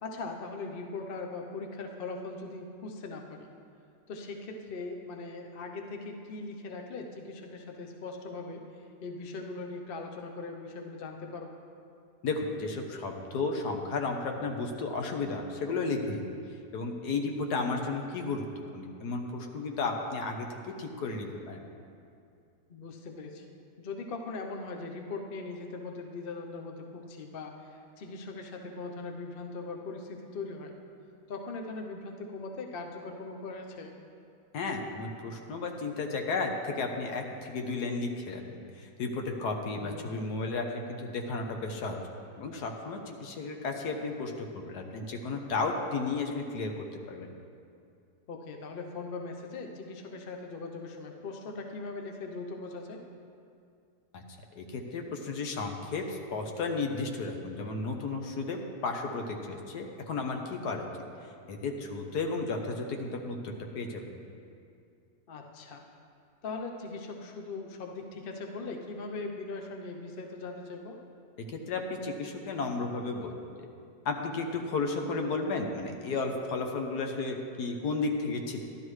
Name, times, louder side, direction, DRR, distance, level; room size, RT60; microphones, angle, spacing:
voice 1, 0.0-3.5 4.1-11.5 17.8-17.9 22.7-23.4 23.8-30.7 31.3-34.0 39.7-40.1 48.3-53.0 65.3-65.8 66.4-71.0, left 3 dB, 50° left, 3 dB, 0.6 m, -40 dB
voice 2, 12.2-16.3 16.7-21.7 34.5-42.0 42.4-47.3 54.1-54.2 54.6-60.9 61.5-64.2 71.4-73.3 74.0-78.6, left 3 dB, 65° left, 3 dB, 1.4 m, -33 dB
12.0 x 12.0 x 3.2 m, 2.4 s
omnidirectional pair, 1.9 m